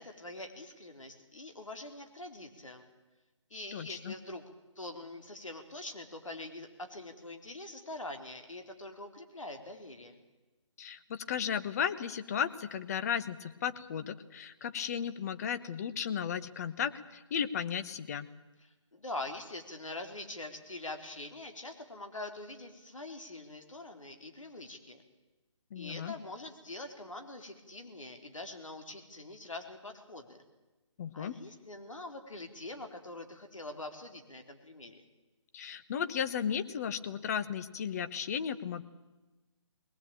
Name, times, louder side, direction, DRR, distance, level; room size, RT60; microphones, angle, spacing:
voice 1, 0.0-2.9 3.5-4.4 4.8-10.2 18.9-25.0 25.8-30.4 31.1-35.0, left 2 dB, 85° left, 5 dB, 3.9 m, -44 dB
voice 2, 3.7-4.1 10.8-18.3 25.7-26.1 31.0-31.4 35.5-38.8, left 8 dB, 30° left, 12 dB, 1.0 m, -35 dB
21.5 x 19.0 x 8.9 m, 1.2 s
figure-of-eight pair, 150°, 16 cm